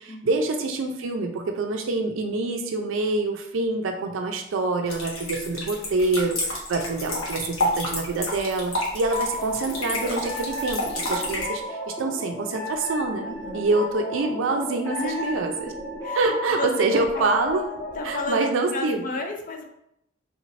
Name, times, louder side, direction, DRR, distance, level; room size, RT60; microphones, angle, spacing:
voice 1, 0.0-13.3 13.5-15.5 16.1-17.6 18.0-19.0, right 3 dB, 75° right, 4 dB, 0.4 m, -26 dB
sound 1, 4.9-11.5, left 1 dB, 85° left, 1.1 m, -29 dB
Little Dress, 9.1-18.3, left 1 dB, 15° left, 1.1 m, -34 dB
voice 2, 13.2-13.7 14.9-15.4 16.0-17.3 17.9-19.7, left 2 dB, 40° left, 4 dB, 0.4 m, -33 dB
3.4 x 2.5 x 3.1 m, 0.76 s
head